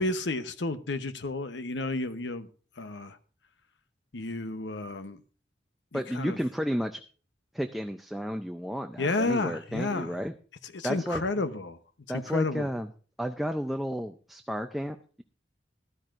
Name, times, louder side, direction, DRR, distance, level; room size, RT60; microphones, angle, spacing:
voice 1, 0.0-2.5 2.8-3.2 4.1-5.2 5.9-6.4 9.0-10.2 10.7-11.8 12.1-12.7, left 2 dB, 80° left, 0.9 m, -31 dB
voice 2, 5.9-7.0 7.5-10.3 10.8-11.2 12.1-12.9 13.2-15.2, equal, ahead, 0.4 m, -32 dB
15.0 x 12.5 x 2.5 m
head